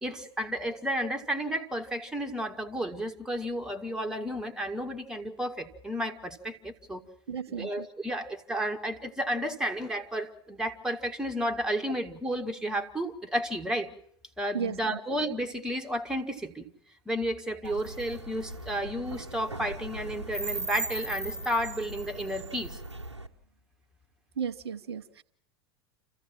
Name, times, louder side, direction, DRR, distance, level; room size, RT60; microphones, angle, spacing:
voice 1, 0.0-7.0 7.5-13.9 14.4-16.7 17.0-22.8, equal, 5° right, 4 dB, 1.7 m, -32 dB
voice 2, 7.3-7.9 14.5-15.0 24.4-25.2, right 7 dB, 70° right, 9 dB, 0.8 m, -34 dB
sound 1, 17.6-23.3, right 2 dB, 85° right, 1.1 m, -38 dB
27.0 x 15.0 x 7.5 m, 0.67 s
figure-of-eight pair, 80°, 14 cm